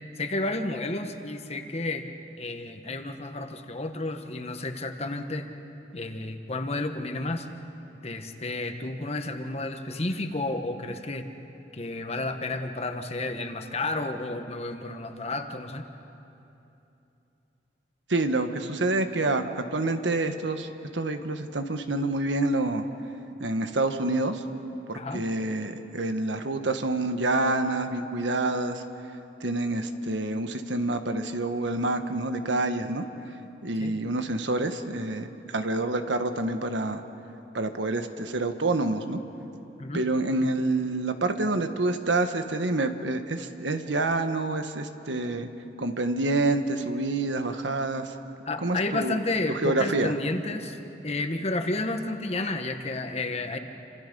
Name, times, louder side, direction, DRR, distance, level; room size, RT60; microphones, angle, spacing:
voice 1, 0.2-2.0 2.4-5.5 5.9-7.5 8.0-11.3 11.7-15.9 24.9-25.3 33.8-34.0 39.8-40.0 48.4-53.6, left 2 dB, 35° left, 6 dB, 1.3 m, -31 dB
voice 2, 18.1-22.9 23.4-24.4 24.9-28.8 29.4-33.0 33.6-37.0 37.5-39.2 39.9-45.5 45.8-48.2 48.6-49.2 49.5-50.1, right 2 dB, 85° right, 8 dB, 1.4 m, -27 dB
29.5 x 26.0 x 5.4 m, 2.9 s
head